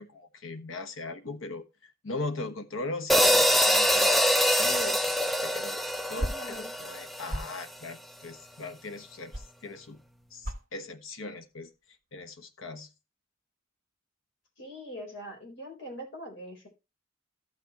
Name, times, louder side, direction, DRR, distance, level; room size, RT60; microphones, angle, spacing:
voice 1, 0.0-10.0 10.3-11.7 12.1-12.9, left 2 dB, 90° left, 1.2 m, -39 dB
sound 1, 3.1-7.5, equal, ahead, 0.4 m, -24 dB
voice 2, 6.2-6.7 14.6-16.7, equal, 70° left, 4.1 m, -42 dB
sound 2, 6.2-10.0 10.3-10.7 11.0-11.6 11.9-12.3, equal, 40° right, 1.5 m, -37 dB
14.0 x 6.1 x 3.0 m
head